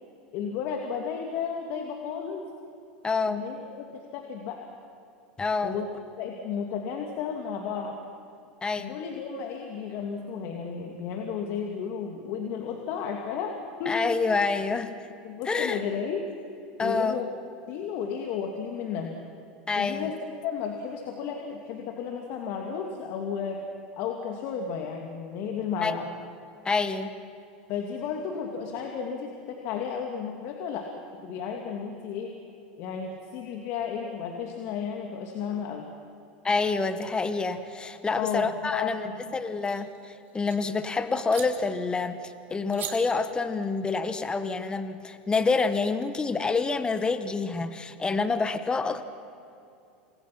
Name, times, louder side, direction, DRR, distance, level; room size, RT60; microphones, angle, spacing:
voice 1, 0.3-2.5 3.3-4.7 5.6-5.9 6.2-8.0 8.8-14.0 15.2-16.2 16.8-17.3 17.7-19.2 19.8-20.1 20.4-23.6 24.0-26.1 27.7-32.3 32.8-35.8 38.2-39.4, left 7 dB, 60° left, 2 dB, 2.4 m, -33 dB
voice 2, 3.0-3.4 5.4-5.7 8.6-8.9 13.8-14.9 15.5-15.8 16.8-17.2 19.7-20.1 25.8-26.0 26.6-27.1 36.4-49.0, left 4 dB, 20° left, 10 dB, 1.4 m, -27 dB
sound 1, 39.5-40.6 41.3-41.5 42.7-42.9, right 10 dB, 40° right, 2.9 m, -40 dB
27.5 x 20.5 x 6.0 m, 2.6 s
hypercardioid pair, 100°, 5 cm